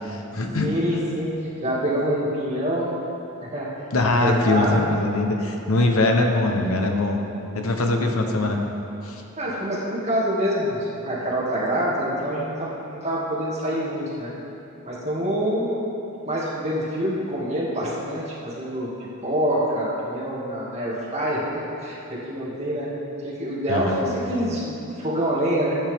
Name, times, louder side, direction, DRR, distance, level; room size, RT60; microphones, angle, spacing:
voice 1, 0.0-0.7 3.9-7.2 7.5-8.6 9.0-9.2 23.7-24.0, left 2 dB, 80° left, 3 dB, 1.0 m, -22 dB
voice 2, 0.6-2.9 3.5-3.7 4.0-4.8 7.7-8.0 9.4-14.3 14.8-15.8 16.3-18.9 19.2-21.4 21.8-22.9 23.2-25.8, equal, 30° right, -7 dB, 2.3 m, -26 dB
14.5 x 8.9 x 3.6 m, 2.9 s
head